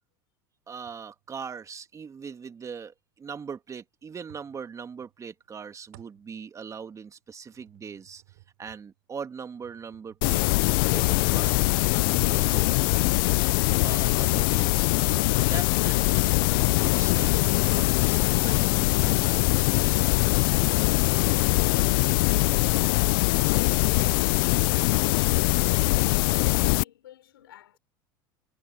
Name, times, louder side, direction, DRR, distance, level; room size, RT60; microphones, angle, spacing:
voice 1, 0.7-10.4 10.9-13.1 13.8-20.2, right 6 dB, 25° right, 2.6 m, -41 dB
sound 1, 0.9-1.3 4.3-5.2 5.4-7.1 7.4-14.7 15.2-16.1 16.3-16.5 16.8-17.7, right 24 dB, 75° right, 3.4 m, -58 dB
sound 2, 10.2-26.8, left 25 dB, 70° left, 0.5 m, -22 dB
voice 2, 21.4-27.8, left 13 dB, 85° left, 4.0 m, -51 dB
hypercardioid pair, 95°, 12 cm